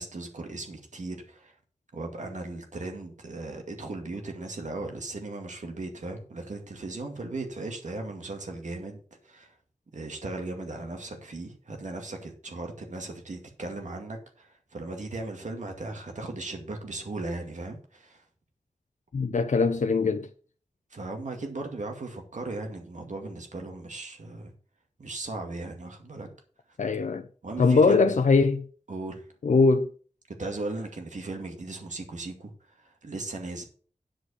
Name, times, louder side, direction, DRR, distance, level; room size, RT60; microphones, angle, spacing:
voice 1, 0.0-1.5 1.9-9.5 9.9-18.2 20.9-24.5 25.0-26.3 27.4-28.2 28.9-29.2 30.4-32.5 32.8-33.6, right 2 dB, 80° right, 2.3 m, -37 dB
voice 2, 19.1-20.3 26.8-27.3 27.6-28.6 29.4-29.9, left 4 dB, 85° left, 0.7 m, -21 dB
10.0 x 5.2 x 6.5 m
wide cardioid pair, 65°, 12 cm